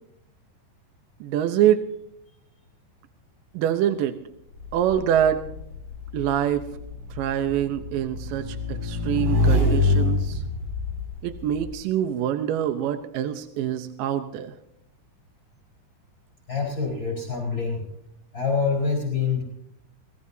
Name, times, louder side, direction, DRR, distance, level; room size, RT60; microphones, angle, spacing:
voice 1, 1.2-1.8 3.5-4.2 4.7-5.4 6.1-6.6 7.1-10.4 11.2-14.5, right 10 dB, 75° right, 9 dB, 2.1 m, -25 dB
Motorcycle / Engine, 4.6-11.7, left 2 dB, 40° right, 5.8 m, -26 dB
voice 2, 16.5-17.8 18.3-19.4, left 5 dB, 30° left, -1 dB, 4.3 m, -25 dB
23.5 x 19.5 x 2.7 m, 0.80 s
omnidirectional pair, 4.7 m